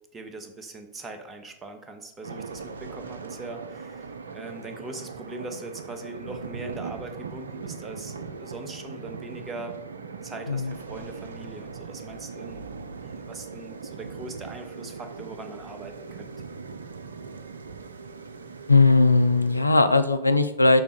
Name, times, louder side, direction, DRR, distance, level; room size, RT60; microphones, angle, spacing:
voice 1, 0.1-9.8 10.2-12.7 13.0-16.3, right 2 dB, 20° right, 6 dB, 0.8 m, -41 dB
sound 1, 2.2-19.7, right 5 dB, 70° right, 0.4 m, -40 dB
voice 2, 18.7-20.8, left 3 dB, 85° left, 9 dB, 0.4 m, -19 dB
6.3 x 3.4 x 5.0 m, 1.0 s
figure-of-eight pair, 90°, 0 cm